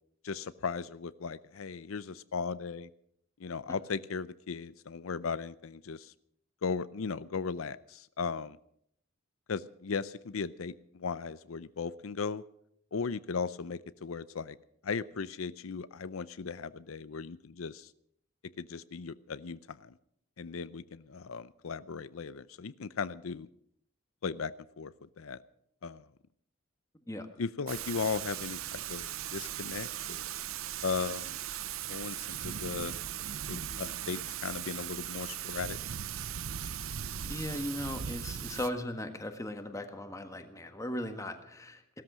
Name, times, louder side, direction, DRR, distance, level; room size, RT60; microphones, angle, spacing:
voice 1, 0.2-2.9 3.4-6.1 6.6-8.6 9.5-12.4 12.9-14.6 14.8-17.9 18.6-19.9 20.4-23.5 24.2-25.4 25.8-26.0 27.4-30.2 30.8-31.4 31.9-32.9 33.5-35.8, left 5 dB, 90° left, 15 dB, 0.6 m, -37 dB
Thunder / Rain, 27.7-38.7, right 10 dB, 90° right, 0.7 m, -38 dB
voice 2, 37.2-42.0, left 1 dB, 15° left, 7 dB, 1.5 m, -38 dB
17.0 x 13.5 x 6.1 m, 0.70 s
head